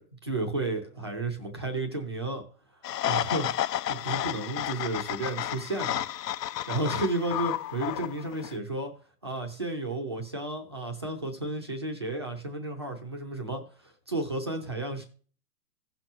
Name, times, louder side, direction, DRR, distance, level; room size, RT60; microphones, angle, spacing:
voice 1, 0.2-2.4 3.1-6.0 6.7-8.9 9.2-15.0, right 2 dB, 20° right, 2 dB, 0.4 m, -32 dB
sound 1, 2.8-8.5, left 12 dB, 80° left, 0.6 m, -31 dB
16.0 x 6.0 x 2.8 m, 0.42 s
hypercardioid pair, 155°, 49 cm